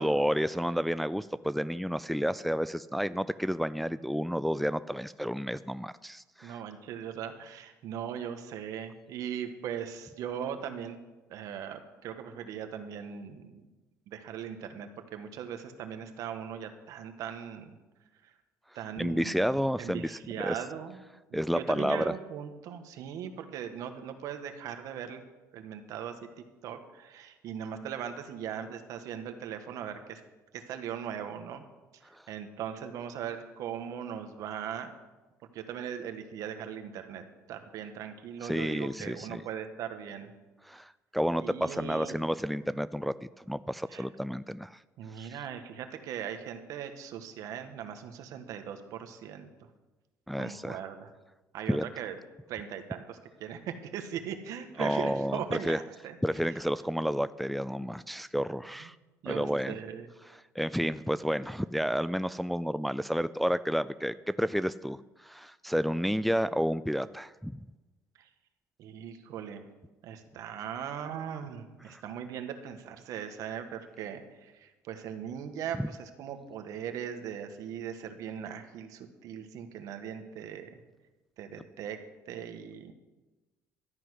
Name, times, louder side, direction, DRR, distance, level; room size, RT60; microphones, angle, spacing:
voice 1, 0.0-6.6 19.0-20.6 21.3-22.1 32.1-32.2 38.4-39.4 40.7-44.8 45.2-45.4 50.3-50.8 51.7-51.8 54.8-55.8 56.2-59.0 59.3-59.7 60.3-67.6 71.9-72.0 75.8-75.9, equal, ahead, 14 dB, 0.3 m, -31 dB
voice 2, 6.4-11.0 11.3-13.6 14.1-17.8 18.7-21.0 21.3-25.2 25.5-26.1 26.6-30.2 30.5-31.6 32.3-34.9 35.5-40.3 41.4-42.2 43.9-44.0 45.0-49.5 50.4-51.1 51.5-52.2 52.5-56.2 58.8-58.9 59.2-60.1 68.2-68.3 68.8-69.6 70.0-80.8 81.4-82.0 82.3-82.9, right 8 dB, 70° right, 7 dB, 1.5 m, -39 dB
13.0 x 6.2 x 9.8 m, 1.1 s
cardioid pair, 105°, 6 cm